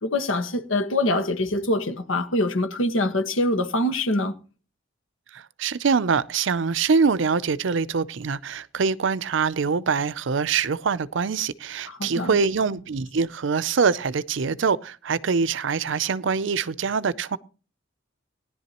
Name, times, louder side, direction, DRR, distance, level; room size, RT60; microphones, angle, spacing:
voice 1, 0.0-4.3 11.9-12.4, left 1 dB, 85° left, 1.4 m, -24 dB
voice 2, 5.3-17.4, right 5 dB, 65° right, 0.5 m, -24 dB
19.0 x 11.0 x 3.0 m
head